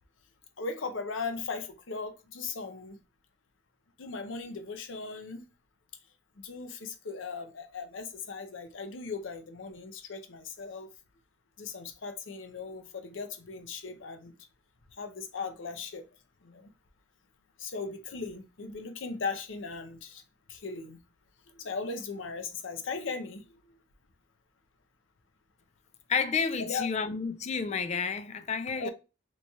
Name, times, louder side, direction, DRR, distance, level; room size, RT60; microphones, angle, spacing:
voice 1, 0.6-3.0 4.0-5.4 6.4-10.9 11.6-14.3 15.0-16.1 16.4-16.7 17.6-20.2 20.5-21.0 21.5-23.6 26.6-26.9 28.8-28.9, left 4 dB, 80° left, 0.6 m, -38 dB
voice 2, 26.1-28.9, left 5 dB, 35° left, 0.3 m, -30 dB
3.0 x 2.3 x 4.0 m
head